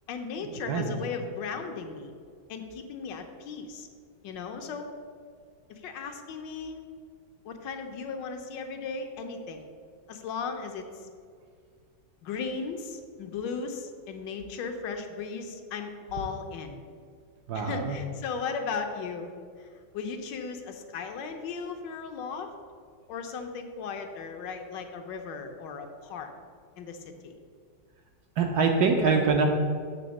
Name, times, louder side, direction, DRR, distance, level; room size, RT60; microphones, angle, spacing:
voice 1, 0.1-2.1 2.5-3.9 4.2-4.9 5.7-6.8 7.4-9.6 10.1-11.1 12.2-16.8 17.5-19.3 19.6-22.5 23.1-26.3 26.8-27.3, left 5 dB, 75° left, 5 dB, 1.3 m, -36 dB
voice 2, 0.6-1.0 17.5-18.0 28.4-29.5, right 4 dB, 70° right, 3 dB, 1.0 m, -24 dB
6.9 x 3.5 x 6.3 m, 2.1 s
omnidirectional pair, 2.0 m